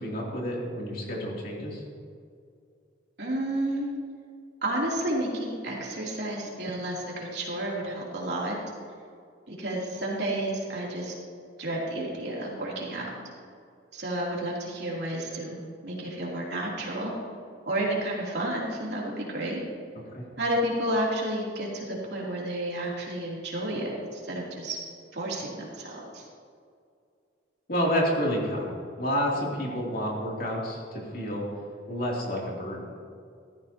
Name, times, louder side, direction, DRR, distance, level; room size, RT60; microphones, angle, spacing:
voice 1, 0.0-1.8 20.1-20.2 27.7-31.5 31.9-32.9, equal, 55° left, -3 dB, 3.0 m, -29 dB
voice 2, 3.2-3.9 4.6-8.6 9.5-11.1 11.6-13.1 13.9-17.1 17.7-19.6 20.4-24.8 25.1-26.2, right 1 dB, 65° right, -4 dB, 3.1 m, -31 dB
15.5 x 13.5 x 2.9 m, 2.3 s
head